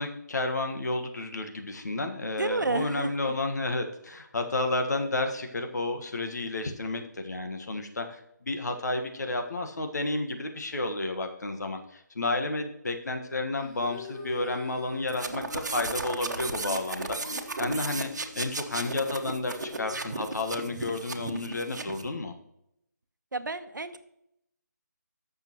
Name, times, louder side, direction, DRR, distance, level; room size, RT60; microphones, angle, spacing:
voice 1, 0.0-22.3, left 2 dB, 65° left, 5 dB, 1.5 m, -31 dB
voice 2, 2.2-3.1 23.3-24.0, right 3 dB, 85° right, 10 dB, 0.9 m, -31 dB
sound 1, 13.6-21.8, left 4 dB, 30° left, 1.6 m, -45 dB
sound 2, 15.1-22.1, right 3 dB, 65° right, 1.2 m, -35 dB
15.0 x 6.6 x 3.0 m, 0.79 s
figure-of-eight pair, 160°, 10 cm